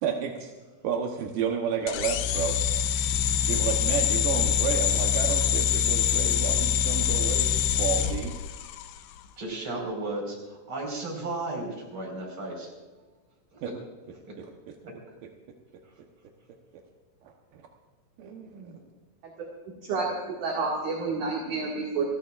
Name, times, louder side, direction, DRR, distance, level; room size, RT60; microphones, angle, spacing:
voice 1, 0.0-0.5 0.8-2.6 3.5-8.3 13.6-13.7 14.4-14.5 17.5-17.6 18.2-18.8, right 7 dB, 75° right, 2 dB, 2.1 m, -31 dB
sound 1, 1.9-9.0, left 9 dB, 80° left, 2.8 m, -25 dB
voice 2, 9.4-12.7 13.5-13.6, right 2 dB, 30° right, 0 dB, 5.3 m, -34 dB
voice 3, 20.4-22.1, right 4 dB, 50° right, -2 dB, 3.0 m, -29 dB
30.0 x 15.5 x 2.5 m, 1.3 s
omnidirectional pair, 5.4 m